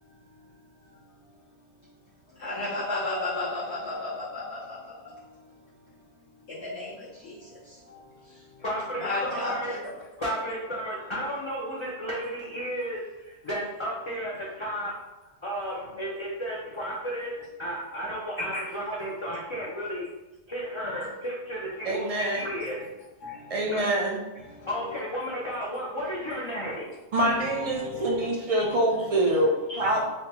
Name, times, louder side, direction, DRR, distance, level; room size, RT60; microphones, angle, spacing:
voice 1, 2.4-4.8 6.5-8.0 8.3-8.4 9.0-10.0 18.5-18.7 20.8-21.1 21.9-22.0 22.8-22.9 23.2-23.7 24.3-24.7 27.2-28.3 28.6-29.1 29.4-30.0, left 2 dB, 80° left, -11 dB, 1.1 m, -34 dB
voice 2, 8.6-9.7 10.2-14.9 15.4-17.3 17.6-20.1 20.5-22.8 23.7-23.8 24.7-27.0, equal, 40° left, -5 dB, 0.4 m, -33 dB
voice 3, 21.8-22.5 23.5-24.2 27.1-30.0, right 1 dB, 55° right, -2 dB, 0.4 m, -25 dB
3.2 x 2.2 x 2.8 m, 1.1 s
omnidirectional pair, 1.1 m